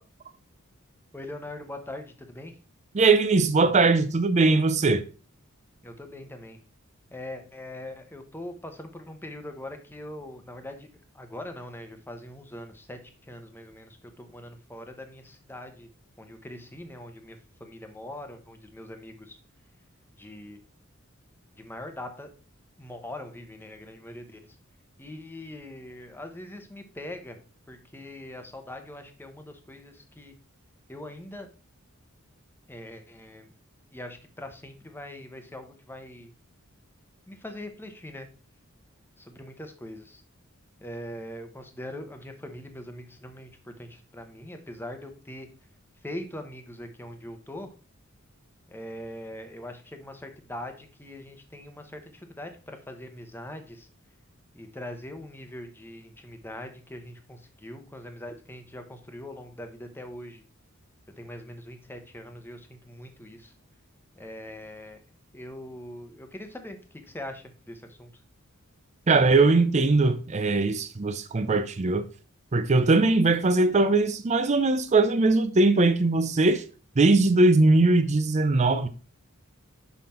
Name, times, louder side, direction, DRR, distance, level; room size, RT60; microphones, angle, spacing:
voice 1, 1.1-2.6 5.8-6.6 7.1-10.9 11.1-13.0 13.3-15.9 16.2-19.4 20.2-20.6 21.6-22.3 22.8-24.5 25.0-27.4 27.7-30.3 30.9-31.5 32.7-33.5 33.9-36.3 37.3-38.3 39.2-40.2 40.8-45.5 46.0-47.7 48.7-53.9 54.5-60.4 61.2-63.5 64.1-65.0 65.3-68.2, left 1 dB, 10° left, 0.9 m, -42 dB
voice 2, 2.9-5.0 69.1-72.0 72.5-76.6 77.0-78.9, right 3 dB, 35° right, 0.5 m, -20 dB
5.9 x 5.7 x 4.3 m
head